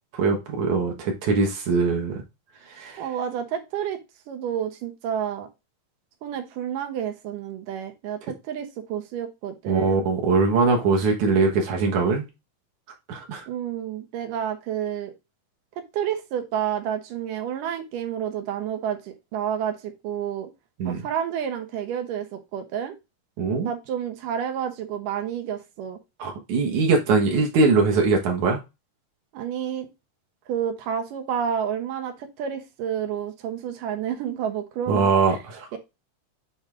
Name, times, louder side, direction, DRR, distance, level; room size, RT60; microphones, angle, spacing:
voice 1, 0.1-2.2 2.7-3.0 9.7-12.3 13.1-13.4 20.8-21.0 23.4-23.7 26.2-28.6 34.9-35.8, right 4 dB, 70° right, 2.8 m, -22 dB
voice 2, 3.0-4.0 4.3-5.5 6.2-10.0 13.5-15.1 15.8-20.5 20.8-22.9 23.6-26.0 29.3-29.9 30.5-35.4 35.7-35.8, right 9 dB, 85° right, 2.7 m, -30 dB
8.8 x 3.1 x 3.7 m
omnidirectional pair, 3.7 m